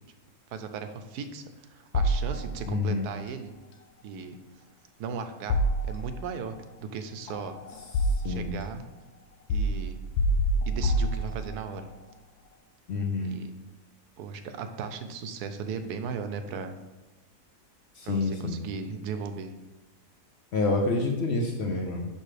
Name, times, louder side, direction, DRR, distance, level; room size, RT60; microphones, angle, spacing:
voice 1, 0.5-3.5 4.0-4.4 5.0-7.6 8.2-8.8 9.5-10.0 10.7-11.9 13.2-13.5 14.2-16.8 18.0-19.5, right 5 dB, 90° right, 8 dB, 1.1 m, -37 dB
sound 1, 1.9-2.8 5.5-6.4 7.3-8.6 9.5-11.7, equal, 90° left, 1.1 m, -27 dB
voice 2, 2.7-3.1 8.2-8.5 12.9-13.4 18.0-18.6 20.5-22.1, left 3 dB, 55° left, 1 dB, 0.8 m, -28 dB
6.7 x 5.4 x 3.3 m, 1.1 s
omnidirectional pair, 1.6 m